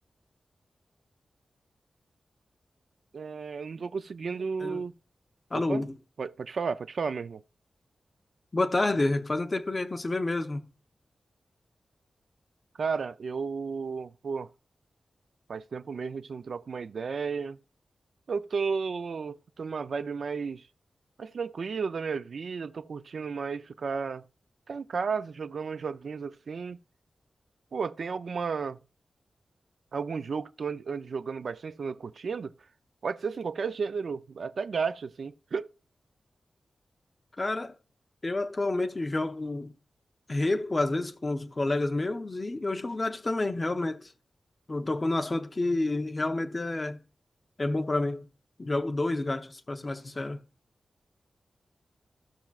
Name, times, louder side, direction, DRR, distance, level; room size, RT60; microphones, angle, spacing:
voice 1, 3.1-4.9 5.5-5.8 6.2-7.4 12.8-14.5 15.5-17.6 18.3-20.6 21.2-24.2 24.7-26.8 27.7-28.8 29.9-32.5 33.0-35.7, right 5 dB, 60° right, 0.4 m, -33 dB
voice 2, 5.5-6.0 8.5-10.7 37.4-37.8 38.2-39.8 40.3-44.1 44.7-47.0 47.6-48.3 48.6-50.4, left 2 dB, 25° left, 0.8 m, -29 dB
16.0 x 5.9 x 2.4 m
wide cardioid pair, 175°, 0 cm